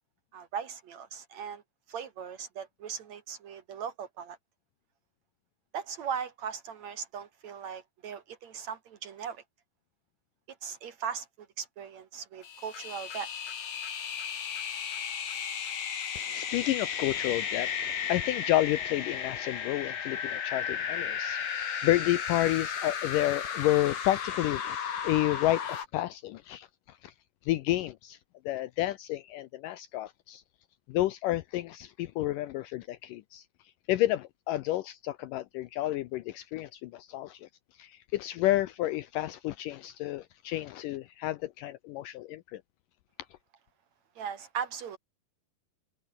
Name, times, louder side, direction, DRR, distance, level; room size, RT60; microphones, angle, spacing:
voice 1, 0.3-1.6 1.9-4.4 5.7-9.4 10.6-11.3 11.6-13.3 44.2-45.0, right 7 dB, 60° right, 2.1 m, -38 dB
sound 1, 12.4-25.9, left 8 dB, 55° left, 3.9 m, -34 dB
voice 2, 16.2-21.5 21.8-27.1 27.5-28.2 28.5-30.4 30.9-33.5 33.9-37.5 37.8-42.6, left 15 dB, 80° left, 2.0 m, -30 dB
omnidirectional pair, 4.4 m